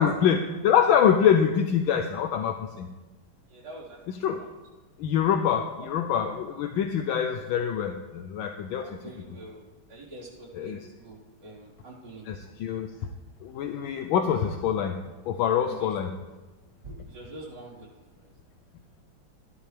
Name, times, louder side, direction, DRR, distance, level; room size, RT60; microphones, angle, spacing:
voice 1, 0.0-2.9 4.2-4.4 5.0-8.8 10.5-10.8 12.3-12.9 13.4-15.0 15.3-16.1, left 8 dB, 75° left, 7 dB, 1.4 m, -25 dB
voice 2, 3.5-4.0 4.3-4.5 5.3-5.4 5.8-5.9 6.3-6.4 8.7-12.3 15.7-15.9 16.8-17.9 18.2-18.3, right 2 dB, 50° right, -8 dB, 4.8 m, -45 dB
16.0 x 11.5 x 3.4 m, 1.2 s
omnidirectional pair, 2.3 m